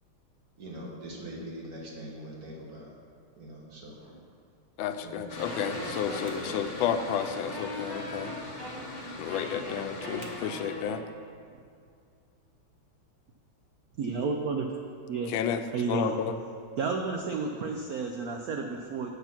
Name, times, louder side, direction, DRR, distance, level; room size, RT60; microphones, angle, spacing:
voice 1, 0.6-2.9 3.4-4.1 5.0-5.3 6.1-6.5 9.2-9.3, right 1 dB, 45° right, -3 dB, 2.0 m, -43 dB
voice 2, 4.8-8.3 9.2-11.0 15.3-15.6 15.9-16.3, left 8 dB, 75° left, 8 dB, 1.3 m, -31 dB
Mechanical fan, 5.3-10.8, left 2 dB, 45° left, 0.5 m, -41 dB
Wind instrument woodwind instrument, 5.4-11.2, left 1 dB, 70° right, 3.6 m, -41 dB
voice 3, 14.0-14.7 15.1-15.3 15.7-16.1 16.8-19.1, right 4 dB, 90° right, 3 dB, 0.8 m, -31 dB
8.5 x 6.8 x 5.8 m, 2.3 s
omnidirectional pair, 2.3 m